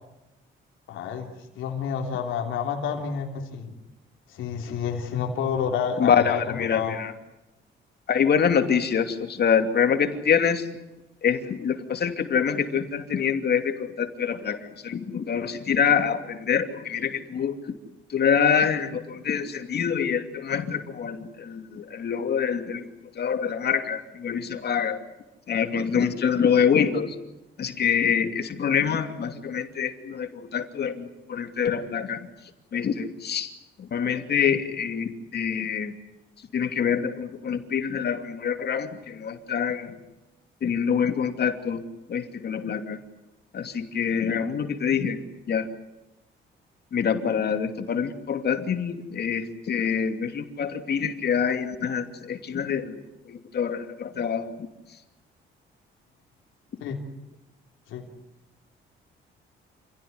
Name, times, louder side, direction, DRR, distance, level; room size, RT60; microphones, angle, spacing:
voice 1, 0.9-3.7 4.3-7.0 56.8-57.0 57.9-58.1, left 7 dB, 85° left, 2 dB, 3.5 m, -29 dB
voice 2, 6.0-7.1 8.1-10.7 11.2-17.6 18.1-22.8 23.1-25.0 25.5-27.1 27.6-32.3 32.7-33.5 33.8-35.9 36.5-40.0 40.6-41.8 42.1-43.0 43.5-45.2 45.5-45.7 46.9-53.0 53.3-54.7, left 7 dB, 55° left, 7 dB, 2.8 m, -25 dB
28.0 x 17.0 x 9.6 m, 0.98 s
cardioid pair, 90°, 20 cm